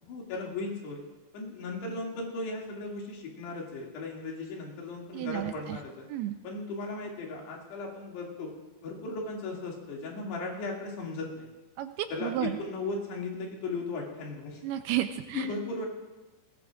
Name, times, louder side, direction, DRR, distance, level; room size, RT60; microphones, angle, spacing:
voice 1, 0.0-1.0 1.3-6.1 6.4-8.5 8.8-11.5 12.1-14.6 15.3-15.9, left 3 dB, 80° left, -2 dB, 4.6 m, -36 dB
voice 2, 5.1-5.8 6.1-6.4 11.8-12.6 14.6-15.5, right 13 dB, 80° right, 8 dB, 2.4 m, -32 dB
20.5 x 19.0 x 2.5 m, 1.1 s
omnidirectional pair, 4.9 m